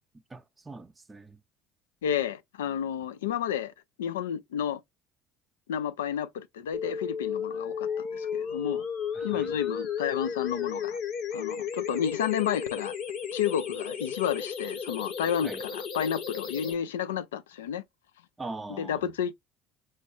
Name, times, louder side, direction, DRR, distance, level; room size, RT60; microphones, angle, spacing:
voice 1, 0.3-1.4 9.1-9.5 15.4-15.6 18.4-19.1, right 3 dB, 25° right, 0.6 m, -42 dB
voice 2, 2.0-3.7 4.0-4.8 5.7-8.8 9.2-11.0 11.3-12.9 13.3-17.8 18.8-19.3, left 9 dB, 85° left, 0.3 m, -31 dB
sound 1, 6.7-16.7, left 7 dB, 60° left, 1.0 m, -34 dB
4.2 x 2.3 x 2.9 m
hypercardioid pair, 65°, 0 cm